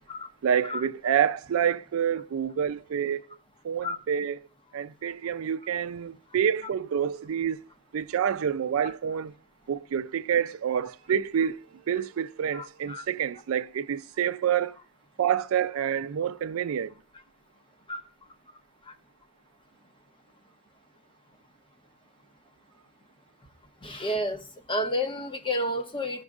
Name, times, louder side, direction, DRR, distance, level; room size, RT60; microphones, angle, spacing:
voice 1, 0.4-3.2 3.6-4.4 4.7-7.6 7.9-9.3 9.7-11.6 11.9-14.8 15.2-16.9, right 8 dB, 75° right, 0.4 m, -27 dB
voice 2, 12.5-13.0 17.9-18.0 18.9-19.0 23.8-24.4 24.7-26.2, left 1 dB, 25° left, 0.9 m, -30 dB
14.0 x 6.2 x 2.4 m
head